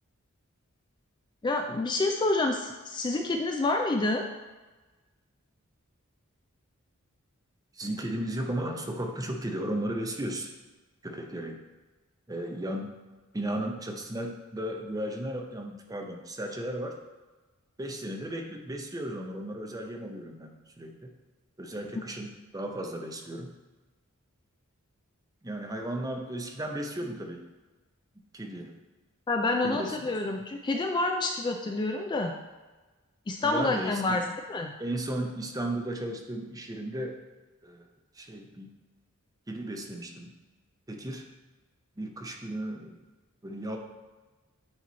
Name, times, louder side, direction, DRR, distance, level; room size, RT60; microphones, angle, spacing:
voice 1, 1.4-4.2 29.3-32.4 33.3-34.7, left 2 dB, 20° left, 3 dB, 0.3 m, -28 dB
voice 2, 7.7-10.5 11.0-11.6 12.3-12.9 13.3-17.0 17.8-21.1 21.6-23.5 25.4-27.4 28.3-28.7 29.6-30.0 33.4-34.2 34.8-37.2 37.6-37.9 38.1-38.8 39.5-40.4 40.9-41.3 42.0-43.0 43.4-43.8, right 1 dB, 15° right, 2 dB, 0.6 m, -35 dB
8.7 x 3.0 x 4.0 m, 1.2 s
head